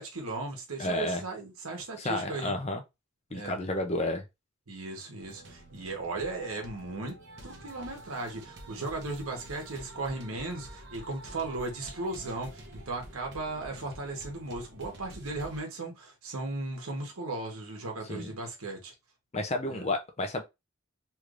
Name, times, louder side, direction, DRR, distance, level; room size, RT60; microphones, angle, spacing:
voice 1, 0.0-2.5 3.3-3.5 4.7-7.1 7.4-18.9 19.7-19.9, right 2 dB, 80° right, 1.1 m, -36 dB
voice 2, 0.8-1.2 2.0-2.8 3.3-4.2 18.1-18.3 19.3-20.4, left 1 dB, 30° left, 0.5 m, -31 dB
sound 1, 5.2-15.6, right 1 dB, 50° right, 0.8 m, -48 dB
3.2 x 3.1 x 2.5 m
head